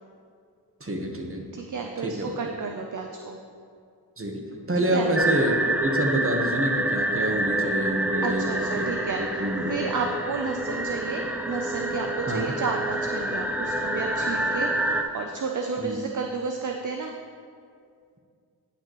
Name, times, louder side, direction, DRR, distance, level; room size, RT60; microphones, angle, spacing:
voice 1, 0.8-1.5 2.0-2.3 4.2-9.9 12.3-12.5 15.8-16.0, right 1 dB, 30° right, 2 dB, 1.2 m, -27 dB
voice 2, 1.5-3.4 4.9-5.1 8.2-17.1, right 4 dB, 50° right, 3 dB, 0.6 m, -32 dB
sound 1, 5.2-15.0, right 1 dB, 5° right, 0.5 m, -27 dB
10.0 x 6.6 x 3.1 m, 2.3 s
cardioid pair, 40°, 41 cm